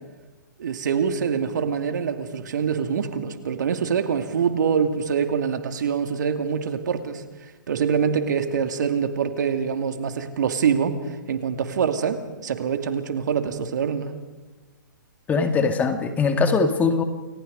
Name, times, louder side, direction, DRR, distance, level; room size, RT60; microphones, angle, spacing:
voice 1, 0.6-7.2 7.7-14.1, right 7 dB, 65° right, 7 dB, 2.6 m, -25 dB
voice 2, 15.3-17.0, left 4 dB, 15° left, 6 dB, 2.1 m, -21 dB
29.5 x 19.0 x 5.4 m, 1.2 s
hypercardioid pair, 135°, 10 cm